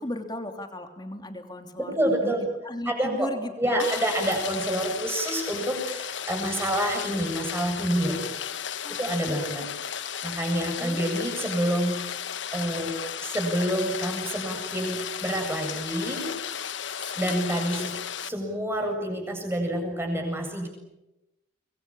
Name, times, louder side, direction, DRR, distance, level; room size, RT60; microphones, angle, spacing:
voice 1, 0.0-3.9 8.8-9.0 9.3-9.4 10.8-11.0, left 1 dB, 20° left, 6 dB, 3.0 m, -36 dB
voice 2, 1.8-2.4 2.9-3.3 3.6-8.2 9.0-9.7 10.2-12.0 12.5-16.3 17.2-17.9 18.2-20.7, right 1 dB, 15° right, 2 dB, 7.8 m, -28 dB
Rain, 3.8-18.3, left 8 dB, 70° left, 1.2 m, -34 dB
25.5 x 22.5 x 9.0 m, 0.95 s
head